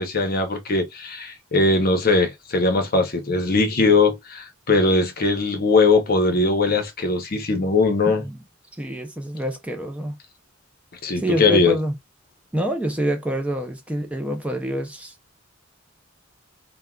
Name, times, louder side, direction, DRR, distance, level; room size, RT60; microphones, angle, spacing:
voice 1, 0.0-8.2 11.0-11.7, left 3 dB, 50° left, 0.7 m, -20 dB
voice 2, 8.8-10.2 11.2-11.9 12.5-15.1, equal, 5° right, 0.4 m, -26 dB
3.4 x 2.1 x 2.2 m
head